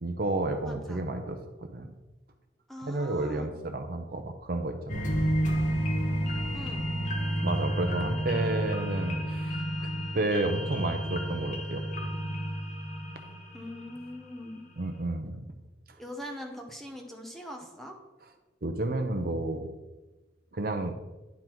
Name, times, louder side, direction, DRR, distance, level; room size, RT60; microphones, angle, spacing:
voice 1, 0.0-1.9 2.8-5.0 7.4-9.9 10.1-12.1 14.8-15.5 18.6-19.7 20.5-20.9, right 2 dB, 50° right, 6 dB, 0.6 m, -31 dB
voice 2, 0.7-1.0 2.7-3.5 6.5-6.8 13.5-14.6 16.0-17.9, equal, ahead, 1 dB, 0.9 m, -42 dB
sound 1, 4.9-14.3 14.7-14.8, equal, 45° left, 1.0 m, -31 dB
10.5 x 3.9 x 4.5 m, 1.1 s
head